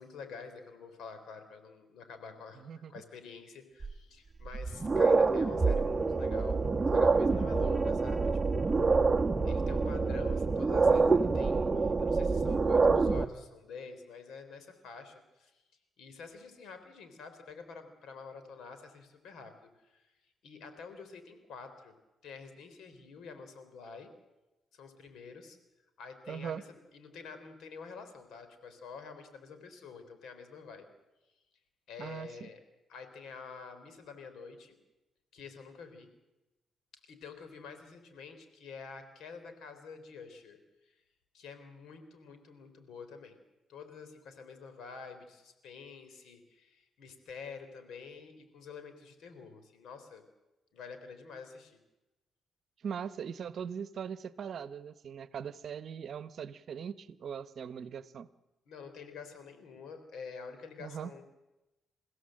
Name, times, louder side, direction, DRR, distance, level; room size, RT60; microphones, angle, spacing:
voice 1, 0.0-8.8 9.4-15.6 16.0-20.1 20.4-21.9 22.2-24.1 24.7-25.6 26.0-30.9 31.9-32.6 32.9-34.8 35.3-36.1 37.0-41.0 41.3-43.4 43.7-50.2 50.7-51.8 58.7-61.2, left 5 dB, 80° left, 9 dB, 3.8 m, -48 dB
voice 2, 2.6-2.9 26.3-26.6 32.0-32.5 52.8-58.3 60.8-61.1, right 7 dB, 60° right, 14 dB, 1.0 m, -40 dB
sound 1, 3.8-3.9 4.4-13.2, right 4 dB, 20° right, 1.2 m, -26 dB
28.5 x 16.0 x 7.8 m, 1.0 s
cardioid pair, 95°, 0 cm